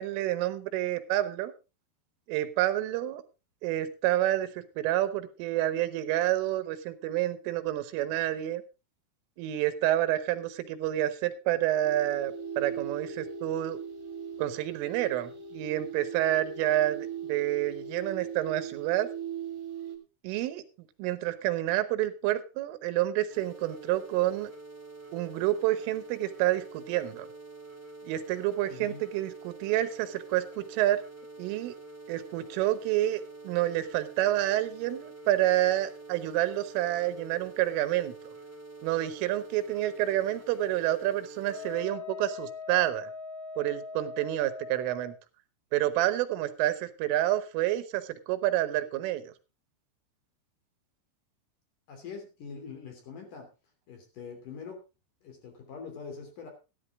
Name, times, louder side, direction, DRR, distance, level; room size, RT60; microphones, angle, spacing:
voice 1, 0.0-1.5 2.3-3.2 3.6-8.6 9.4-13.8 14.4-19.1 20.2-20.6 21.0-24.5 25.1-27.3 28.1-31.0 31.4-31.7 32.1-38.1 38.8-43.1 43.6-45.2 45.7-49.3, right 14 dB, 90° right, 12 dB, 3.6 m, -29 dB
sound 1, 11.8-20.0, right 6 dB, 35° right, 2.3 m, -39 dB
sound 2, 23.3-41.8, right 3 dB, 5° right, 1.3 m, -47 dB
voice 2, 28.7-29.0 51.9-53.5 53.9-54.8 55.2-56.5, left 5 dB, 45° left, 3 dB, 4.2 m, -43 dB
Wind instrument woodwind instrument, 41.5-45.1, left 5 dB, 80° left, 4.7 m, -41 dB
13.5 x 12.0 x 3.6 m, 0.29 s
omnidirectional pair, 5.6 m